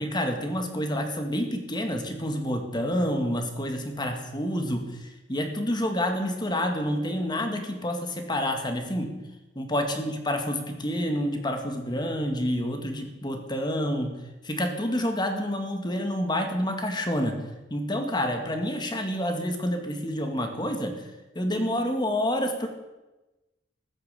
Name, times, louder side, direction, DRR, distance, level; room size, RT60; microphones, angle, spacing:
voice 1, 0.0-9.1 9.6-14.2 14.4-17.4 17.7-21.0 21.4-22.7, equal, 25° left, 5 dB, 2.0 m, -28 dB
14.5 x 11.0 x 8.4 m, 1.1 s
head